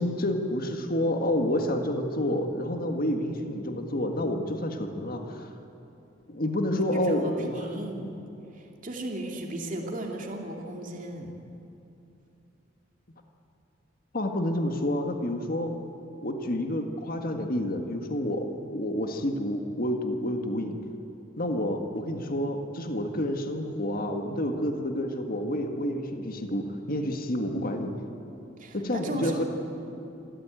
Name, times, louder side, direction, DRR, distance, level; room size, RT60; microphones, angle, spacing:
voice 1, 0.0-5.5 6.3-7.7 14.1-15.7 16.2-20.8 21.4-27.9 28.7-29.4, left 1 dB, 50° left, 4 dB, 1.8 m, -29 dB
voice 2, 7.2-8.1 8.5-11.3 28.6-29.4, right 1 dB, 45° right, 1 dB, 2.5 m, -36 dB
26.0 x 14.5 x 9.1 m, 2.8 s
head